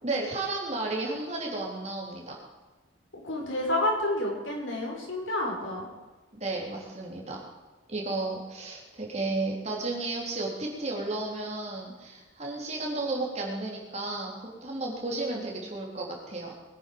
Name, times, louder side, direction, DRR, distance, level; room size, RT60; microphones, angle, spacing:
voice 1, 0.0-2.4 6.3-7.5 7.9-16.5, right 2 dB, 35° right, -2 dB, 3.6 m, -33 dB
voice 2, 3.2-5.9, left 1 dB, 90° left, -1 dB, 5.1 m, -29 dB
22.0 x 9.7 x 5.4 m, 1.2 s
head